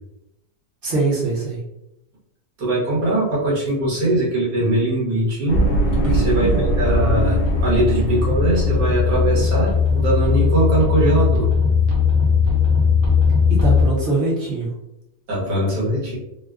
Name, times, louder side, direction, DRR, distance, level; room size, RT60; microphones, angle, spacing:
voice 1, 0.8-1.6 6.0-6.7 13.5-14.7, right 3 dB, 40° right, -6 dB, 0.9 m, -23 dB
voice 2, 2.6-5.6 6.1-11.5 15.3-16.2, right 1 dB, 80° right, -6 dB, 1.7 m, -21 dB
sound 1, 5.5-10.3, right 2 dB, 65° left, 0.5 m, -22 dB
sound 2, 6.7-13.9, left 6 dB, 60° right, 0.6 m, -18 dB
3.5 x 2.2 x 2.3 m, 0.89 s
omnidirectional pair, 1.7 m